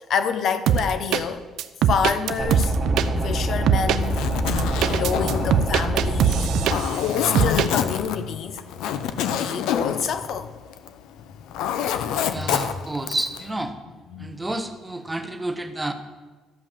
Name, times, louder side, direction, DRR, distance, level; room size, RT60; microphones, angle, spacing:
voice 1, 0.0-1.4 1.9-2.7 3.2-4.3 4.8-8.6 9.3-10.5 11.7-12.6 14.1-14.4, left 7 dB, 45° left, 0.7 m, -28 dB
sound 1, 0.7-1.2 1.6-3.1 3.7-4.0 4.5-7.0 7.4-7.7, right 8 dB, 65° right, 0.5 m, -21 dB
sound 2, 2.4-6.8, right 1 dB, 30° right, 1.5 m, -25 dB
Zipper (clothing), 3.9-11.0 11.3-13.4, left 9 dB, 90° left, 0.7 m, -27 dB
voice 2, 12.3-13.7 14.2-15.9, right 2 dB, 10° right, 0.8 m, -30 dB
13.0 x 5.3 x 7.3 m
cardioid pair, 170°, 0 cm